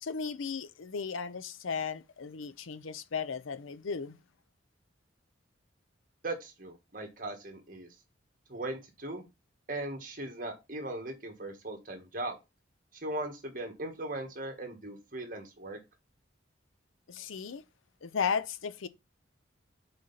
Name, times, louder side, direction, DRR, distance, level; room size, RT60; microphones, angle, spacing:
voice 1, 0.0-4.2 17.1-17.6 18.0-18.9, left 6 dB, 85° left, 0.6 m, -35 dB
voice 2, 6.2-7.9 8.5-9.2 9.7-12.4 13.0-15.8, right 2 dB, 45° right, 1.5 m, -38 dB
6.3 x 4.3 x 4.0 m
head